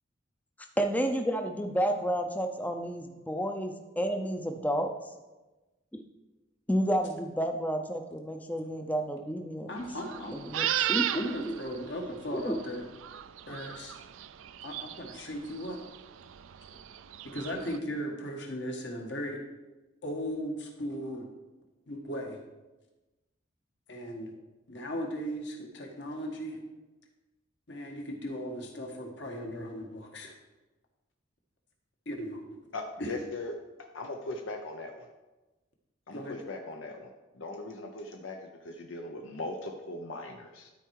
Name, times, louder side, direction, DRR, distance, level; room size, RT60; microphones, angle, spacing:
voice 1, 0.8-4.9 5.9-6.0 6.7-9.7 10.3-11.5 12.5-12.6, equal, 10° left, 5 dB, 0.5 m, -31 dB
voice 2, 9.7-10.4 11.1-12.8 13.5-14.0 14.6-15.8 17.3-19.4 20.0-21.3 21.9-22.4 23.9-24.3 24.7-26.6 27.7-30.3 32.1-32.4 33.0-33.1 36.1-36.4, equal, 60° left, 1 dB, 1.5 m, -37 dB
sound 1, 9.8-17.8, right 11 dB, 80° right, 0.4 m, -36 dB
voice 3, 32.7-33.5 33.9-35.1 36.1-40.7, left 2 dB, 80° left, 3 dB, 0.8 m, -39 dB
12.5 x 4.6 x 4.7 m, 1.1 s
head